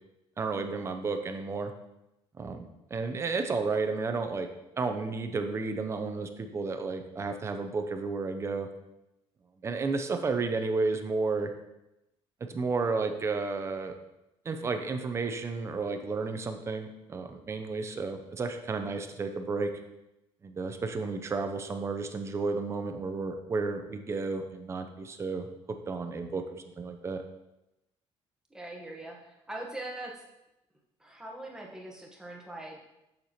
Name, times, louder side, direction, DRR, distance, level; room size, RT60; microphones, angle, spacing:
voice 1, 0.4-1.7 2.4-4.5 4.8-8.7 9.6-11.5 12.5-13.9 14.4-19.7 20.4-25.5 25.9-27.2, right 4 dB, 25° right, 6 dB, 0.6 m, -32 dB
voice 2, 28.5-30.2 31.0-32.8, right 1 dB, 5° right, -2 dB, 1.1 m, -42 dB
6.7 x 6.6 x 2.9 m, 0.92 s
cardioid pair, 145°, 11 cm